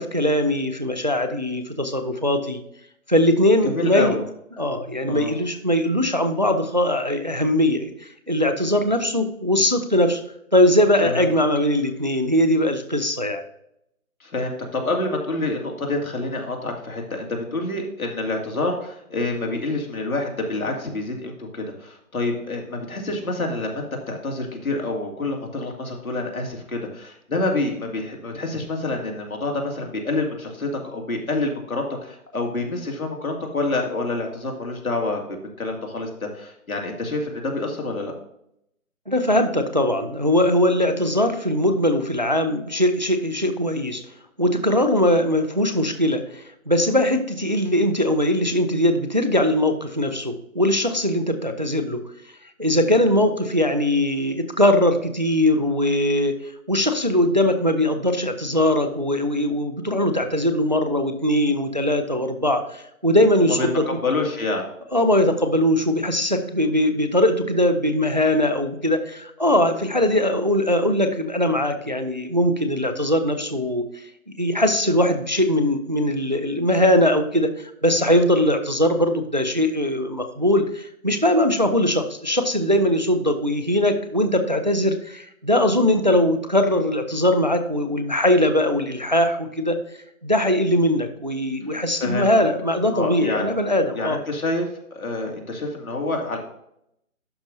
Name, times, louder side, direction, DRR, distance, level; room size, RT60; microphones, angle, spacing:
voice 1, 0.0-2.6 3.1-4.2 4.6-10.2 10.5-13.4 39.1-44.0 44.4-52.0 52.6-63.8 64.9-74.0 74.4-89.8 90.2-94.2, left 1 dB, 35° right, 8 dB, 0.5 m, -21 dB
voice 2, 3.6-4.2 5.0-5.3 11.0-11.2 14.2-38.1 63.5-63.7 64.0-64.7 92.0-92.3 92.9-93.5 93.9-96.4, left 2 dB, 75° left, 1 dB, 2.5 m, -27 dB
11.5 x 5.1 x 2.7 m, 0.77 s
figure-of-eight pair, 160°, 43 cm